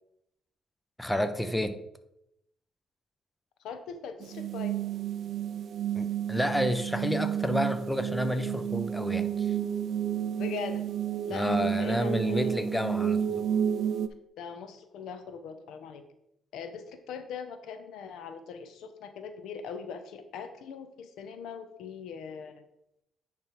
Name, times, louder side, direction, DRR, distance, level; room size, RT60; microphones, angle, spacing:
voice 1, 1.0-1.8 5.9-9.5 11.3-13.5, equal, 5° left, 9 dB, 0.6 m, -30 dB
voice 2, 3.6-4.7 10.4-10.8 11.3-12.6 14.4-16.0 16.5-22.6, left 6 dB, 80° left, 8 dB, 0.8 m, -41 dB
sound 1, 4.2-14.1, right 9 dB, 60° right, 0.5 m, -31 dB
9.8 x 3.4 x 4.5 m, 0.81 s
cardioid pair, 90°, 0 cm